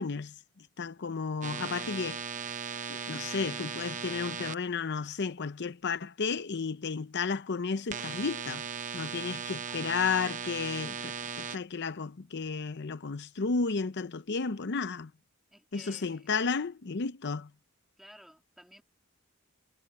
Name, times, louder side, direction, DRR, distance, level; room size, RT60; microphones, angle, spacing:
voice 1, 0.0-2.2 2.9-8.7 8.9-15.1 15.7-17.5, left 5 dB, 55° left, 0.7 m, -33 dB
sound 1, 1.4-4.6 7.9-11.6, right 6 dB, 35° right, 0.8 m, -37 dB
voice 2, 9.6-9.9 15.5-16.7 18.0-18.8, equal, ahead, 2.6 m, -55 dB
head